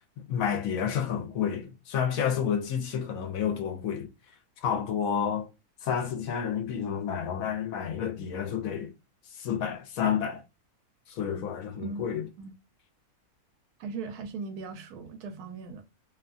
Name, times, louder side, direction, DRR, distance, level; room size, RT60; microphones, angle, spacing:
voice 1, 0.2-4.1 4.6-5.5 5.8-8.9 9.3-10.4 11.1-12.3, left 8 dB, 70° left, 1.0 m, -30 dB
voice 2, 11.8-12.5 13.8-15.8, right 4 dB, 90° right, 1.1 m, -39 dB
2.7 x 2.2 x 2.4 m
omnidirectional pair, 1.6 m